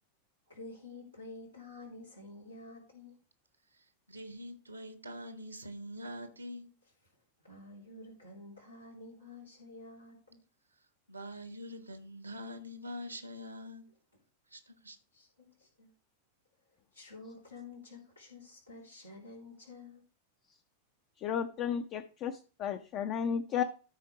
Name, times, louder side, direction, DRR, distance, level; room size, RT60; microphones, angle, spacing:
voice 1, 0.5-3.2 7.4-10.4 15.1-15.9 16.9-20.0, left 2 dB, 85° left, 3.2 m, -50 dB
voice 2, 3.7-6.7 11.1-13.8 14.5-15.0, equal, 85° right, 1.2 m, -44 dB
voice 3, 21.2-23.6, left 8 dB, 35° left, 0.7 m, -33 dB
13.0 x 4.5 x 4.8 m
figure-of-eight pair, 90°, 0 cm